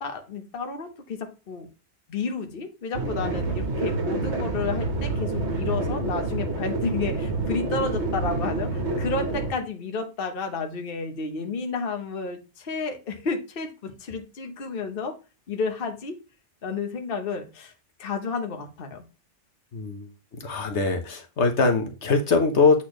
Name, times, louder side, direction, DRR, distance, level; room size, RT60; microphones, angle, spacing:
voice 1, 0.0-1.7 2.1-15.1 15.5-16.2 16.6-17.7 18.0-19.0, left 4 dB, 50° left, 5 dB, 1.2 m, -31 dB
sound 1, 2.9-9.5, right 2 dB, 65° right, 1.4 m, -28 dB
voice 2, 19.7-20.1 20.4-22.8, left 4 dB, 70° left, 5 dB, 1.4 m, -22 dB
8.3 x 4.2 x 3.1 m, 0.31 s
omnidirectional pair, 1.2 m